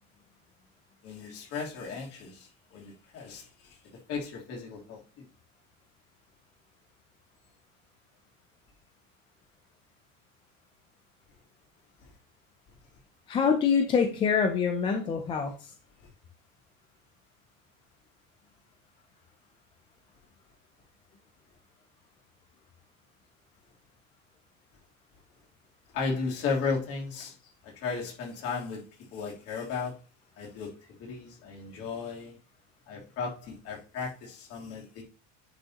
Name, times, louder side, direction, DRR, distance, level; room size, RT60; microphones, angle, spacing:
voice 1, 1.0-3.8 4.1-5.2 25.9-27.3 27.6-29.9 30.4-30.7 31.0-32.4 32.9-35.0, left 5 dB, 40° left, 3.1 m, -35 dB
voice 2, 13.3-15.5, left 6 dB, 15° left, 0.4 m, -25 dB
10.0 x 5.3 x 2.9 m
cardioid pair, 180°, 36 cm